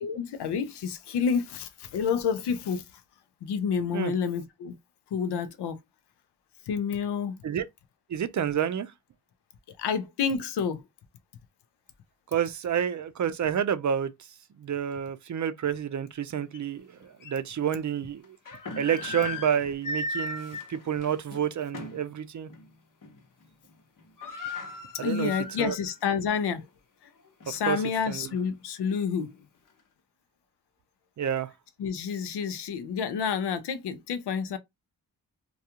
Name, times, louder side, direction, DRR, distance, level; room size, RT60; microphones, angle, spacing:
voice 1, 0.0-2.8 3.4-4.8 5.1-5.8 6.7-7.4 9.8-10.8 25.0-26.7 27.5-29.4 31.8-34.6, left 6 dB, 85° left, 0.6 m, -29 dB
voice 2, 8.1-8.9 12.3-14.1 14.6-18.4 18.8-22.5 25.0-25.3 25.6-25.8 27.5-27.8 28.1-28.3 31.2-31.5, right 8 dB, 50° right, 0.5 m, -29 dB
sound 1, 16.5-16.6 17.2-17.3 18.2-22.1 22.5-22.7 23.0-23.4 23.7-23.8 24.0-25.9 26.3-26.4 27.1-28.4, left 3 dB, 55° left, 0.9 m, -37 dB
2.3 x 2.3 x 2.8 m
cardioid pair, 50°, 39 cm